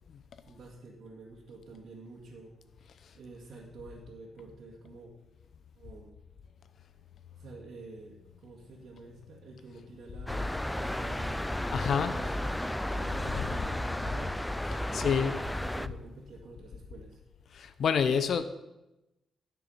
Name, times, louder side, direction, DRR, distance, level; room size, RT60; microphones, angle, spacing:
voice 1, 0.5-2.6 3.1-5.1 5.8-6.1 7.4-11.4 12.1-14.4 14.9-17.2, right 3 dB, 65° right, 2.1 m, -48 dB
sound 1, 10.3-15.9, left 1 dB, 5° left, 0.4 m, -33 dB
voice 2, 11.7-12.3 13.4-13.6 14.6-15.4 17.5-18.4, left 7 dB, 65° left, 0.6 m, -28 dB
13.5 x 6.9 x 5.6 m
cardioid pair, 105°, 0 cm